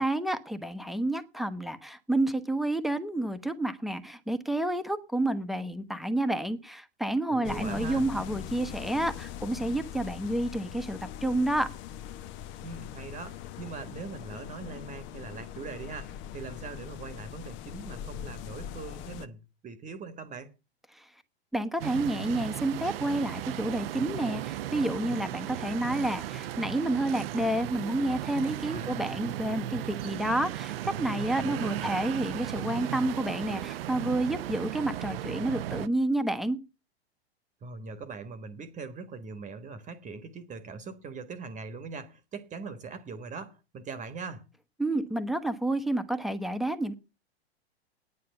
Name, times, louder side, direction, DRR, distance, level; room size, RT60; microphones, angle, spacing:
voice 1, 0.0-11.7 21.0-21.1 21.5-36.6 44.8-46.9, right 1 dB, ahead, 1.1 m, -29 dB
voice 2, 7.3-8.1 12.6-20.5 28.7-29.2 31.4-31.9 37.6-44.5, right 4 dB, 25° right, 1.3 m, -41 dB
sound 1, 7.4-19.3, left 10 dB, 35° left, 0.9 m, -41 dB
sound 2, 21.8-35.9, right 13 dB, 60° right, 0.7 m, -36 dB
9.6 x 9.4 x 6.9 m
hypercardioid pair, 100°, 32 cm